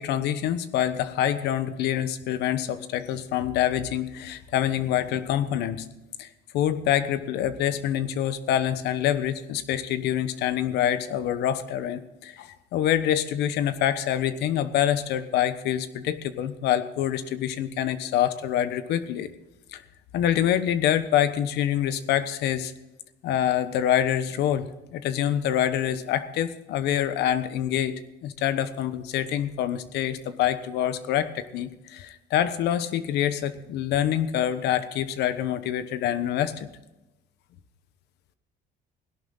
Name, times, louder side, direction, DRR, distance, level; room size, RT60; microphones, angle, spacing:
voice 1, 0.0-5.9 6.2-6.3 6.5-19.3 19.7-19.8 20.1-22.7 23.2-36.7, left 10 dB, 80° left, 12 dB, 1.1 m, -26 dB
17.0 x 11.5 x 3.9 m, 0.98 s
cardioid pair, 110°, 17 cm